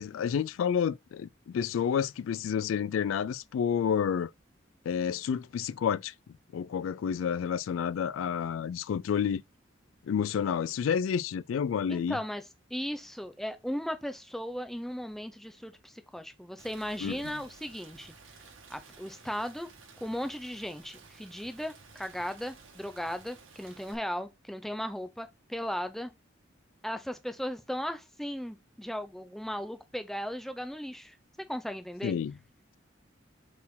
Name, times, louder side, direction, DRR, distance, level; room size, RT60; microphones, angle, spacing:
voice 1, 0.0-4.3 4.9-6.1 6.5-9.4 10.1-12.2 17.0-17.2 32.0-32.3, left 7 dB, 90° left, 0.3 m, -30 dB
voice 2, 11.9-12.4 12.7-18.1 18.7-19.7 20.0-26.1 26.8-31.2 31.5-32.1, equal, ahead, 0.6 m, -36 dB
Rain, 16.6-23.9, right 4 dB, 80° right, 1.6 m, -54 dB
4.3 x 4.1 x 5.5 m
head